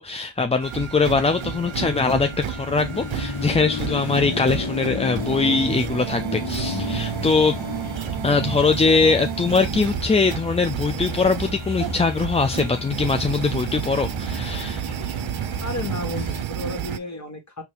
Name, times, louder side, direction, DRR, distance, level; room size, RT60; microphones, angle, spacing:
voice 1, 0.0-7.6 8.2-14.8, left 4 dB, 15° left, 0.3 m, -22 dB
sound 1, 0.6-17.0, right 13 dB, 75° right, 0.6 m, -31 dB
Car passing by / Traffic noise roadway noise / Engine, 1.0-8.3, left 4 dB, 75° left, 1.3 m, -32 dB
sound 2, 6.6-16.5, left 3 dB, 50° left, 1.1 m, -35 dB
voice 2, 15.6-17.6, left 2 dB, 35° left, 1.7 m, -32 dB
4.1 x 2.8 x 3.4 m
cardioid pair, 50°, 47 cm